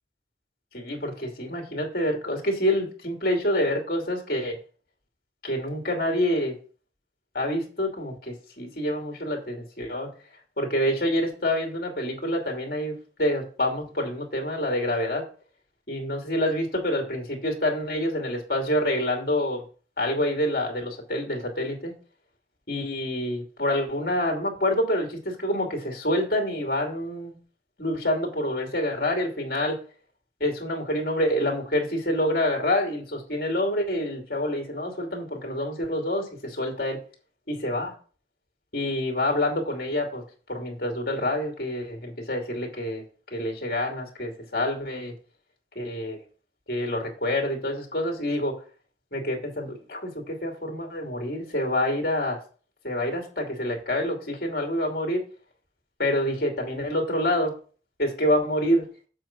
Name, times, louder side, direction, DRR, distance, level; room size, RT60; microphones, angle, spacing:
voice 1, 0.7-4.6 5.4-6.5 7.3-10.1 10.6-15.2 15.9-19.6 20.0-21.9 22.7-27.3 27.8-29.8 30.4-37.0 37.5-37.9 38.7-40.2 40.5-43.0 43.3-45.1 45.7-46.2 46.7-48.6 49.1-52.4 52.8-55.2 56.0-57.5 58.0-58.9, left 1 dB, 55° left, 2 dB, 2.7 m, -27 dB
7.6 x 4.9 x 5.9 m, 0.39 s
head